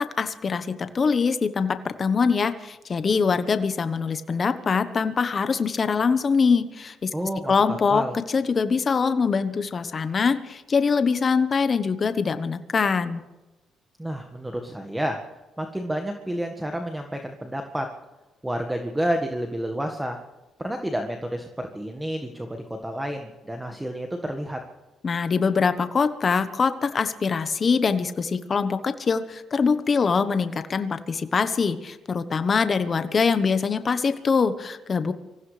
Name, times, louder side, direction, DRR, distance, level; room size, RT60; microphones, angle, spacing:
voice 1, 0.0-7.1 7.5-13.2 25.0-35.1, left 5 dB, 40° left, 10 dB, 1.1 m, -23 dB
voice 2, 7.1-8.2 14.0-15.2 15.6-17.9 18.4-20.2 20.6-24.6, equal, 10° right, 4 dB, 1.7 m, -30 dB
25.0 x 15.5 x 3.4 m, 1.1 s
cardioid pair, 90°, 0 cm